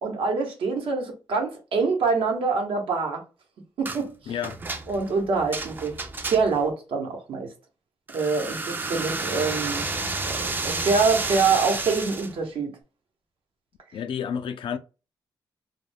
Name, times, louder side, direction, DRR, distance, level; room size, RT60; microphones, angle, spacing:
voice 1, 0.0-3.2 3.8-4.1 4.9-6.0 6.2-7.5 8.1-9.9 10.2-12.7, right 4 dB, 85° right, 0.9 m, -25 dB
sound 1, 3.8-4.0 4.4-6.7 8.1-12.3, right 3 dB, 20° right, 0.4 m, -31 dB
voice 2, 4.3-4.6 13.9-14.8, left 8 dB, 70° left, 0.4 m, -30 dB
2.2 x 2.2 x 3.2 m
cardioid pair, 115°, 9 cm